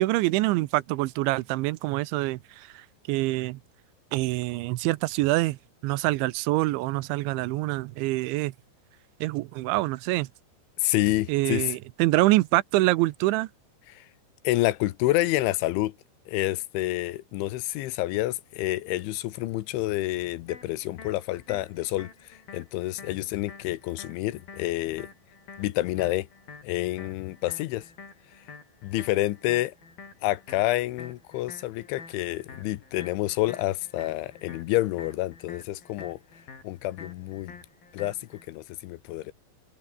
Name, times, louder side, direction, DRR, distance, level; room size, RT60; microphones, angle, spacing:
voice 1, 0.0-3.6 4.1-5.6 5.8-8.5 9.2-10.3 11.3-13.5, right 19 dB, 90° right, 3.1 m, -25 dB
voice 2, 10.8-11.8 13.9-14.0 14.5-16.0 16.3-22.1 22.5-25.1 25.6-26.3 26.6-27.8 28.8-29.7 30.2-36.2 36.6-37.6 37.9-38.2 38.5-39.3, left 17 dB, 85° left, 3.5 m, -28 dB
sound 1, 20.5-38.5, left 5 dB, 50° left, 7.7 m, -48 dB
omnidirectional pair, 5.3 m